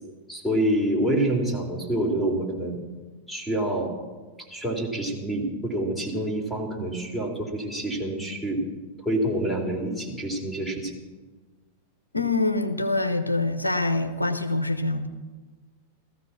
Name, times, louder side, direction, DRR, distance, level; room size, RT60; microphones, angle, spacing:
voice 1, 0.3-2.8 3.3-3.9 4.5-8.6 9.0-10.9, right 1 dB, ahead, 1 dB, 3.7 m, -27 dB
voice 2, 12.1-15.1, left 2 dB, 85° left, 7 dB, 1.0 m, -25 dB
16.5 x 14.0 x 6.0 m, 1.3 s
figure-of-eight pair, 90°, 0 cm